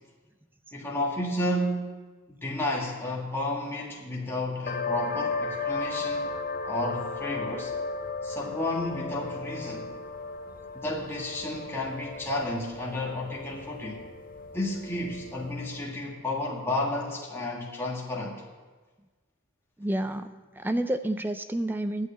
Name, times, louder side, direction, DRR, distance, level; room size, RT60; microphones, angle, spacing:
voice 1, 0.7-1.9 2.4-6.3 6.7-7.7 8.2-9.9 10.7-14.0 14.5-18.4, left 1 dB, 10° left, -4 dB, 1.8 m, -32 dB
sound 1, 4.7-16.0, left 4 dB, 40° left, 0.6 m, -35 dB
voice 2, 19.8-22.1, right 1 dB, 10° right, 10 dB, 0.4 m, -29 dB
11.0 x 8.3 x 8.5 m, 1.3 s
head